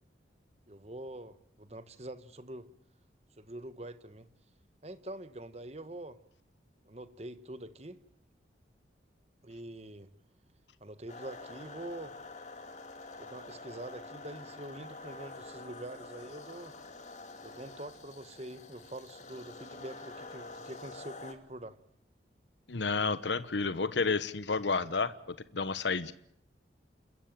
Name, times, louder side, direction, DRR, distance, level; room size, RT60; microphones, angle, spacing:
voice 1, 0.7-2.7 3.4-4.3 4.8-6.2 6.8-8.0 9.4-10.1 10.8-12.2 13.2-16.7 17.4-21.8, right 1 dB, 35° right, 1.3 m, -45 dB
sound 1, 11.1-21.3, left 3 dB, 40° left, 2.8 m, -47 dB
voice 2, 22.7-26.1, left 4 dB, 75° left, 1.1 m, -31 dB
28.5 x 14.5 x 9.0 m
head